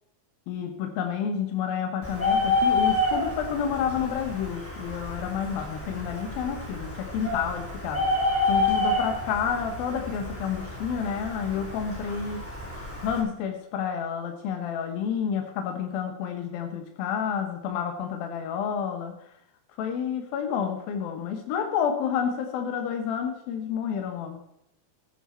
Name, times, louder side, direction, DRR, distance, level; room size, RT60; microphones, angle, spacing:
voice 1, 0.5-8.1 8.5-12.4 13.0-19.1 19.8-24.4, left 7 dB, 80° left, 5 dB, 3.0 m, -30 dB
Bird, 2.0-13.2, left 2 dB, 5° left, 3.3 m, -29 dB
15.0 x 10.0 x 4.4 m, 0.82 s
omnidirectional pair, 4.2 m